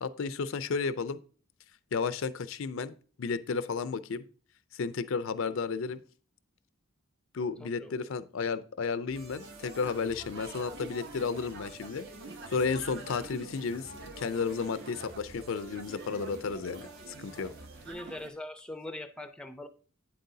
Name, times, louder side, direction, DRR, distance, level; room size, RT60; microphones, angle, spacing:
voice 1, 0.0-1.2 1.9-4.2 4.7-6.0 7.3-12.1 12.5-17.5, left 5 dB, 70° left, 0.5 m, -33 dB
voice 2, 7.6-8.2 17.4-17.5 17.8-19.7, left 1 dB, 5° left, 0.5 m, -42 dB
sound 1, 9.1-17.9, right 2 dB, 70° right, 1.6 m, -51 dB
sound 2, 9.4-18.3, right 3 dB, 55° right, 0.9 m, -47 dB
8.7 x 7.7 x 2.7 m
head